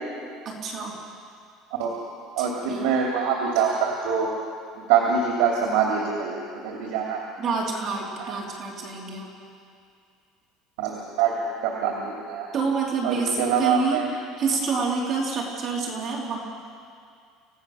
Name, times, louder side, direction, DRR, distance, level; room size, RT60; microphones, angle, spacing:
voice 1, 0.4-1.0 2.4-2.9 7.4-9.3 12.5-14.0 14.4-16.4, right 4 dB, 40° right, -2 dB, 3.1 m, -28 dB
voice 2, 2.4-4.3 4.8-7.2 10.8-12.5 13.0-14.1, right 6 dB, 90° right, -1 dB, 2.8 m, -24 dB
27.5 x 16.5 x 6.4 m, 2.3 s
cardioid pair, 155°, 0 cm